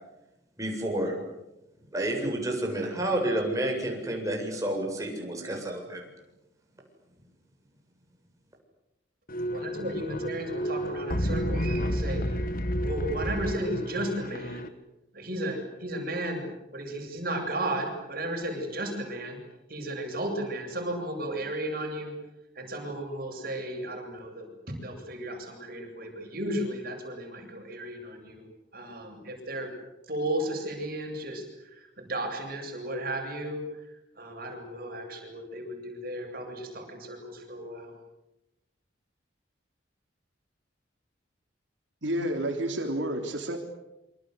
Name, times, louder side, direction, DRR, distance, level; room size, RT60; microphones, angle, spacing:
voice 1, 0.6-1.1 1.9-6.0, right 1 dB, 20° right, 0 dB, 7.9 m, -30 dB
sound 1, 9.3-14.7, equal, 50° left, 1.7 m, -31 dB
voice 2, 9.5-12.5 12.8-14.7 15.1-16.5 16.7-19.4 19.7-22.1 22.6-28.5 28.7-29.7 30.1-33.6 34.2-37.9, right 1 dB, 55° right, 3 dB, 7.9 m, -34 dB
voice 3, 42.0-43.6, right 1 dB, 80° right, 3 dB, 3.6 m, -30 dB
27.5 x 26.0 x 8.2 m, 0.92 s
head